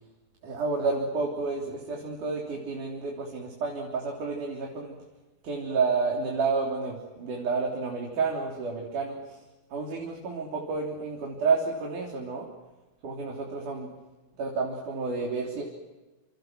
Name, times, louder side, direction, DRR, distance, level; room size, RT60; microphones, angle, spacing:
voice 1, 0.4-5.0 5.4-9.4 9.7-12.5 13.0-13.9 14.4-15.6, right 4 dB, 60° right, -1 dB, 4.9 m, -30 dB
29.0 x 29.0 x 6.1 m, 1.2 s
omnidirectional pair, 4.2 m